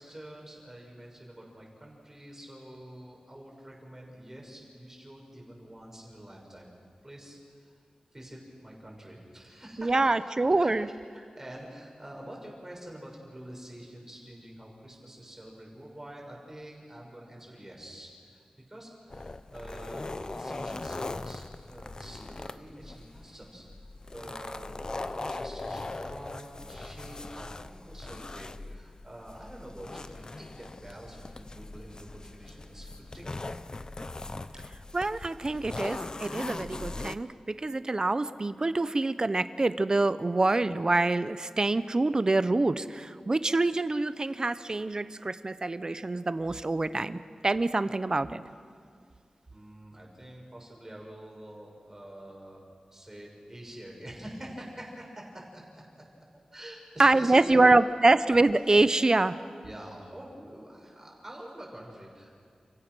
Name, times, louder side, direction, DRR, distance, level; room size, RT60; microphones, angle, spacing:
voice 1, 0.0-6.7 7.0-7.7 8.1-10.1 10.5-10.7 11.1-23.6 24.0-33.4 49.5-52.6 52.9-55.6 56.0-56.1 56.5-57.5 59.6-62.3, right 1 dB, 20° right, -1 dB, 6.1 m, -46 dB
voice 2, 9.8-10.9 34.9-48.4 57.0-59.3, right 2 dB, 35° right, 13 dB, 0.8 m, -25 dB
sound 1, 19.1-37.2, left 2 dB, 40° left, 0.7 m, -40 dB
29.5 x 16.5 x 6.3 m, 2.3 s
wide cardioid pair, 80°, 2 cm